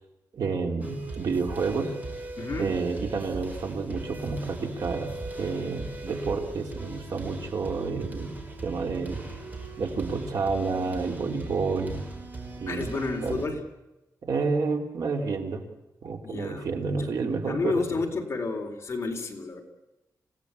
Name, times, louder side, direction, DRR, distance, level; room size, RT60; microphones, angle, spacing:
voice 1, 0.3-1.9 2.6-8.3 8.6-9.2 9.8-12.0 12.6-13.4 14.2-15.6 16.0-18.0, right 4 dB, 65° right, 3 dB, 3.4 m, -30 dB
sound 1, 0.8-13.5, right 2 dB, 25° right, 4.9 m, -39 dB
voice 2, 2.4-2.7 12.7-13.6 16.2-17.1 17.5-19.6, left 3 dB, 40° left, 2 dB, 3.9 m, -31 dB
28.0 x 17.0 x 8.4 m, 0.97 s
wide cardioid pair, 150°, 7 cm